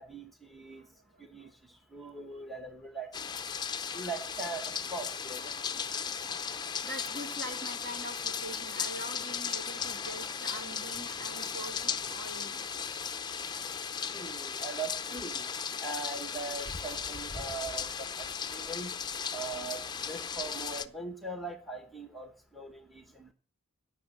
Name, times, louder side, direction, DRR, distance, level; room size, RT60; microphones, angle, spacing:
voice 1, 0.0-0.9 1.2-3.4 3.9-5.6 14.1-15.5 15.8-18.9 19.3-23.3, right 3 dB, ahead, 1.1 m, -41 dB
voice 2, 0.7-1.5 5.8-12.9 13.8-14.0, right 1 dB, 45° right, 2.5 m, -45 dB
sound 1, 3.1-20.9, left 6 dB, 20° left, 0.6 m, -36 dB
17.5 x 6.9 x 7.3 m
head